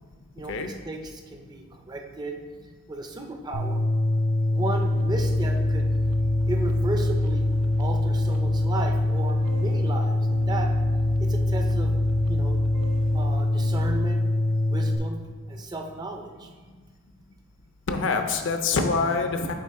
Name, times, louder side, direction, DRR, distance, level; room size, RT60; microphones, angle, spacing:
voice 1, 0.4-2.4 2.9-3.9 4.5-5.9 6.5-7.5 7.8-10.2 10.5-10.7 11.2-12.0 12.3-12.6 13.1-14.2 14.7-15.2 15.5-16.5, right 2 dB, 20° right, 4 dB, 0.4 m, -34 dB
sound 1, 3.5-15.0, left 1 dB, 75° left, 0.9 m, -24 dB
sound 2, 4.7-14.0, right 1 dB, 90° right, 0.5 m, -36 dB
voice 2, 17.9-19.5, left 4 dB, 60° left, 6 dB, 0.6 m, -25 dB
8.5 x 3.6 x 3.6 m, 1.5 s
head